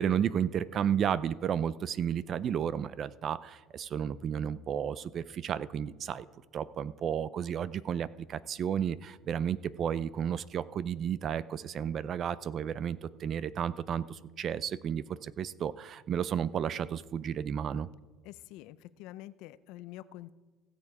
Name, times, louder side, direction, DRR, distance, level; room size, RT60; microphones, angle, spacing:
voice 1, 0.0-6.3 6.5-17.9, right 8 dB, 45° right, 18 dB, 0.4 m, -32 dB
voice 2, 18.2-20.3, left 15 dB, 75° left, 16 dB, 0.5 m, -47 dB
16.5 x 6.8 x 4.8 m, 1.3 s
cardioid pair, 115°, 0 cm